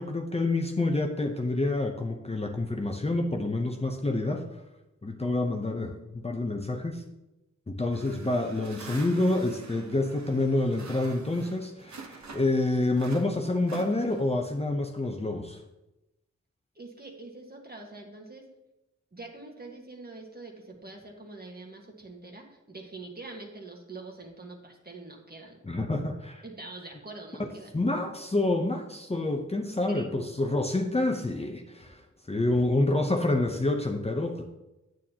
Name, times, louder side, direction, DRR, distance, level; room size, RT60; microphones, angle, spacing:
voice 1, 0.0-4.4 5.0-7.0 7.7-15.6 25.6-26.4 27.7-32.0 32.3-34.4, left 2 dB, 20° left, 2 dB, 0.7 m, -28 dB
sound 1, 7.9-12.6 12.9-14.4, right 4 dB, 70° right, 1.0 m, -46 dB
voice 2, 13.5-14.0 16.7-18.4 19.1-25.6 26.4-27.7 29.9-30.1, right 2 dB, 30° right, 1 dB, 1.6 m, -45 dB
9.0 x 8.9 x 2.9 m, 0.96 s
wide cardioid pair, 95°, 29 cm